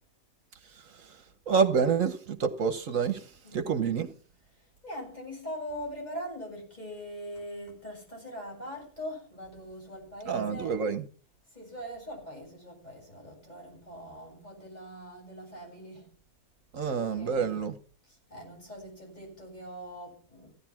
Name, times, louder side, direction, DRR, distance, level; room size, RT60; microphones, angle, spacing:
voice 1, 1.5-4.1 10.3-11.0 16.7-17.7, right 6 dB, 65° right, 1.3 m, -28 dB
voice 2, 3.4-3.8 4.6-10.7 11.5-16.1 17.1-17.6 18.1-20.5, equal, 30° left, 7.9 m, -42 dB
16.0 x 11.0 x 6.0 m
omnidirectional pair, 1.5 m